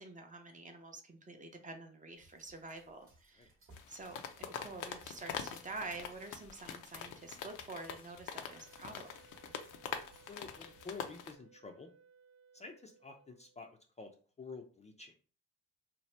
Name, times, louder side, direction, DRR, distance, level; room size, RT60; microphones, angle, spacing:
voice 1, 0.0-3.5 3.9-9.1, right 3 dB, 25° right, 5 dB, 0.5 m, -48 dB
sound 1, 2.1-11.1, right 2 dB, 45° right, 0.9 m, -64 dB
sound 2, 3.7-11.4, left 8 dB, 85° left, 0.5 m, -45 dB
Wind instrument woodwind instrument, 8.5-13.7, right 5 dB, 70° right, 0.5 m, -64 dB
voice 2, 10.2-11.9 12.5-13.7 14.0-14.1 14.4-15.1, left 4 dB, 25° left, 3 dB, 0.4 m, -49 dB
2.8 x 2.1 x 3.1 m, 0.39 s
cardioid pair, 90°, 30 cm